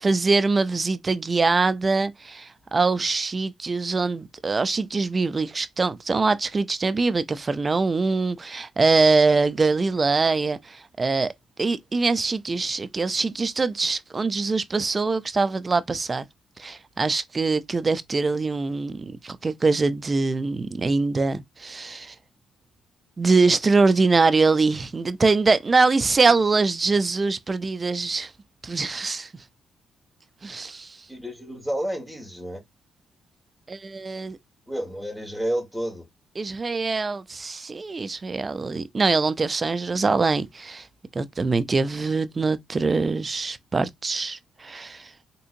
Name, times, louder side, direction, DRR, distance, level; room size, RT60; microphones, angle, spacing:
voice 1, 0.0-11.3 11.6-16.3 16.6-22.1 23.2-28.3 28.6-29.3 30.4-31.0 33.7-34.4 36.4-40.9 41.1-45.1, right 3 dB, 30° right, 0.4 m, -23 dB
voice 2, 26.3-26.7 31.1-32.6 34.7-36.1, right 1 dB, 5° right, 1.5 m, -31 dB
3.7 x 2.7 x 2.5 m
cardioid pair, 90°, 0 cm